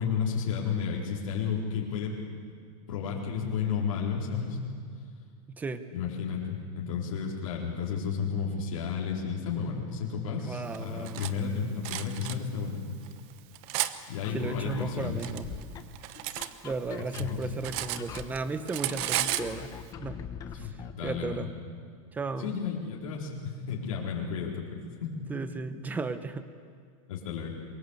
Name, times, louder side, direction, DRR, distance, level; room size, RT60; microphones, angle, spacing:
voice 1, 0.0-2.2 2.9-4.6 5.9-12.8 14.1-15.2 17.2-17.4 20.5-21.5 22.4-25.3 27.1-27.5, left 6 dB, 70° left, -3 dB, 4.2 m, -32 dB
voice 2, 5.6-5.9 10.4-11.2 14.3-15.5 16.6-19.7 20.0-20.2 20.6-20.7 21.0-21.5 22.1-22.5 25.3-26.4, right 4 dB, 10° right, 11 dB, 0.9 m, -35 dB
Cutlery silverware, 10.7-11.3 11.8-12.4 13.0-13.9 14.8-16.5 16.8-18.4 18.7-19.5, right 15 dB, 35° right, 0.9 m, -33 dB
sound 1, 14.2-21.5, left 8 dB, 20° left, 0.9 m, -43 dB
23.0 x 21.5 x 8.2 m, 2.1 s
supercardioid pair, 165°, 17 cm